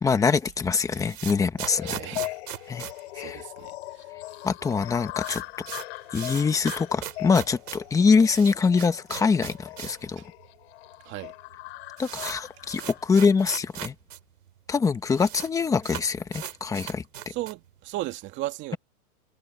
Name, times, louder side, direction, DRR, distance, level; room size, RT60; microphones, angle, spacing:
voice 1, 0.0-2.0 2.7-2.9 3.2-3.4 4.4-5.4 6.1-10.2 12.0-13.9 14.7-17.0, left 5 dB, 5° left, 1.1 m, -24 dB
sound 1, 0.7-3.9 4.2-4.3 4.5-4.6 4.9-10.1 10.4-10.5 11.2-11.3 11.5-14.2 14.5-14.6 14.8-15.5 15.8-17.7, right 11 dB, 80° right, 4.1 m, -39 dB
sound 2, 1.6-13.1, left 20 dB, 45° left, 7.7 m, -40 dB
voice 2, 1.8-2.4 3.1-4.1 10.2-10.3 11.0-11.3 17.3-18.8, right 17 dB, 25° right, 2.2 m, -36 dB
supercardioid pair, 160°, 45 cm